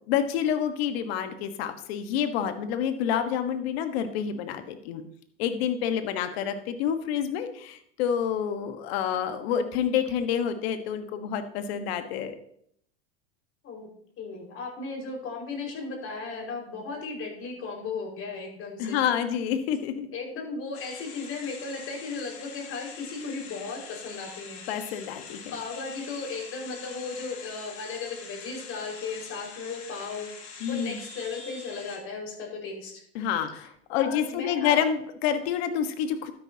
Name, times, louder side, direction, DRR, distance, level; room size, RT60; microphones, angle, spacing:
voice 1, 0.1-5.0 5.4-12.4 18.8-20.1 24.7-25.4 30.6-31.0 33.1-36.3, left 8 dB, 70° left, 8 dB, 1.4 m, -28 dB
voice 2, 14.2-19.1 20.1-24.6 25.5-30.3 30.7-32.9 34.0-34.8, left 4 dB, 45° left, 0 dB, 5.2 m, -36 dB
sound 1, 20.7-32.0, left 5 dB, 90° left, 2.3 m, -44 dB
12.5 x 10.0 x 2.9 m, 0.67 s
supercardioid pair, 110°, 32 cm